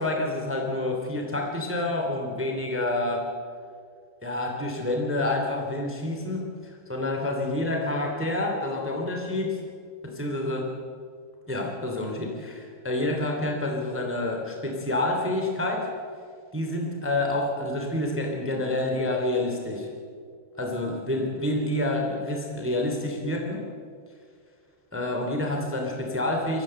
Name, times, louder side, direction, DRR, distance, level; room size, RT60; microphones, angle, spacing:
voice 1, 0.0-3.3 4.2-6.5 6.9-9.6 10.0-10.7 11.5-15.9 16.5-19.9 20.6-23.7 24.9-26.6, left 1 dB, 5° right, 2 dB, 1.9 m, -28 dB
23.0 x 15.0 x 7.7 m, 2.1 s
omnidirectional pair, 5.0 m